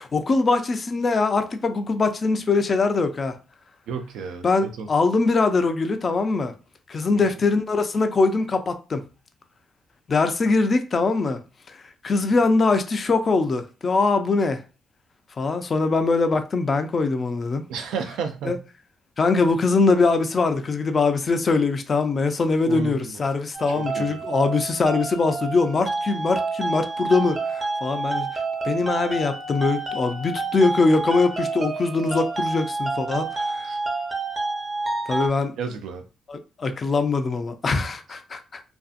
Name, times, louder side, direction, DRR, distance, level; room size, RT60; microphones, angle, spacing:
voice 1, 0.1-3.4 4.4-6.5 6.9-9.0 10.1-11.4 11.7-11.8 12.0-14.6 15.4-17.6 18.5-18.6 19.2-33.7 35.1-35.5 36.3-38.6, left 3 dB, 40° left, 0.4 m, -22 dB
voice 2, 3.9-4.9 7.1-7.3 17.7-18.6 22.6-23.2 23.7-24.2 33.7-33.8 35.6-36.0, right 5 dB, 85° right, 0.4 m, -32 dB
sound 1, 23.5-35.3, right 3 dB, 30° right, 0.6 m, -29 dB
2.5 x 2.3 x 2.4 m
cardioid pair, 90°, 0 cm